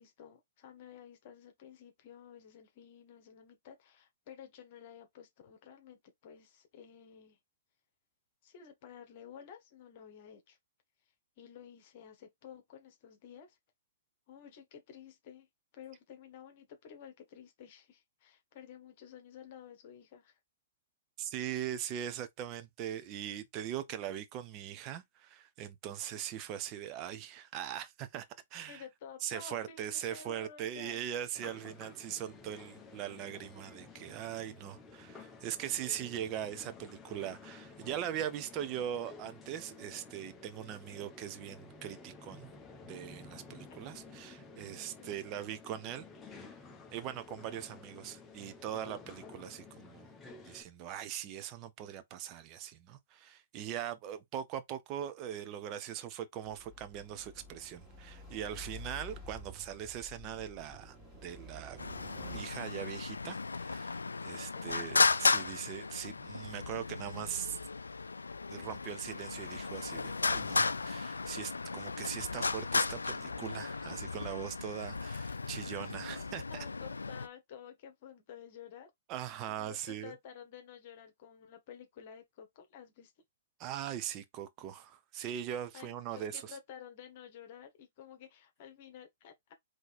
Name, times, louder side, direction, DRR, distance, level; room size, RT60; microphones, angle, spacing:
voice 1, 0.0-7.4 8.4-10.6 11.4-13.6 14.3-15.5 15.7-20.4 28.7-31.0 45.0-45.2 64.5-64.9 76.5-78.9 79.5-83.1 85.7-89.5, left 8 dB, 45° left, 1.4 m, -52 dB
voice 2, 21.2-28.3 28.5-28.8 29.2-42.5 42.8-46.1 46.4-46.5 46.9-50.1 50.4-61.9 62.3-67.6 68.5-76.4 79.1-80.1 83.6-86.6, right 10 dB, 35° right, 0.7 m, -41 dB
sound 1, 31.3-50.6, left 4 dB, 15° left, 1.0 m, -52 dB
sound 2, 56.4-62.4, left 1 dB, 5° right, 2.4 m, -50 dB
Traffic noise roadway noise, 61.8-77.3, left 4 dB, 90° left, 0.3 m, -35 dB
4.0 x 3.2 x 4.2 m
hypercardioid pair, 120°, 0 cm